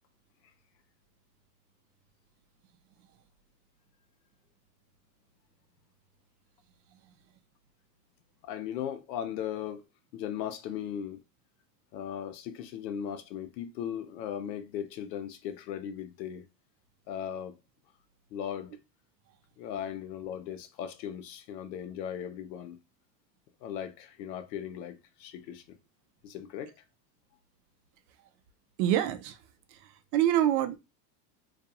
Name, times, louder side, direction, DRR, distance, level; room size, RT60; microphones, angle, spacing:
voice 1, 8.4-9.8 10.1-11.2 11.9-16.4 17.1-17.6 18.3-18.8 19.6-22.8 23.6-25.8 26.2-26.7, left 9 dB, 85° left, 0.7 m, -37 dB
voice 2, 28.8-29.4 29.7-29.8 30.1-30.8, right 11 dB, 60° right, 0.6 m, -25 dB
2.5 x 2.3 x 2.7 m
supercardioid pair, 105°, 50 cm